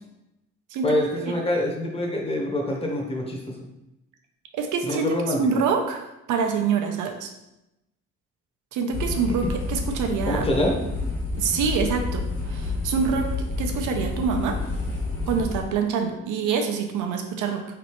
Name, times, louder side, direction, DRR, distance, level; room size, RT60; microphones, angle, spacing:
voice 1, 0.8-3.7 4.8-5.6 10.3-10.7, left 1 dB, 20° left, 0 dB, 1.0 m, -25 dB
voice 2, 4.5-5.1 5.4-7.3 8.7-9.4 9.7-10.4 11.4-13.3 13.6-14.6 15.3-17.6, right 6 dB, 85° right, 4 dB, 0.7 m, -25 dB
sound 1, 8.9-15.6, left 2 dB, 90° left, 1.3 m, -29 dB
4.0 x 3.4 x 3.0 m, 0.90 s
cardioid pair, 90°, 30 cm